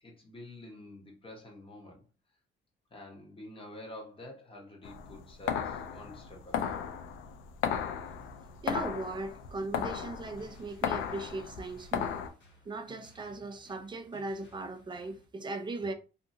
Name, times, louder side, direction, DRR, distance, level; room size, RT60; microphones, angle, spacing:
voice 1, 0.0-2.0 2.9-6.9, left 1 dB, 25° left, 1.1 m, -48 dB
sound 1, 4.8-12.3, left 8 dB, 80° left, 0.4 m, -35 dB
voice 2, 8.6-12.2 12.7-15.9, right 2 dB, 25° right, 0.5 m, -38 dB
sound 2, 10.2-15.3, left 1 dB, 65° left, 1.4 m, -60 dB
2.7 x 2.4 x 2.6 m
cardioid pair, 90°, 20 cm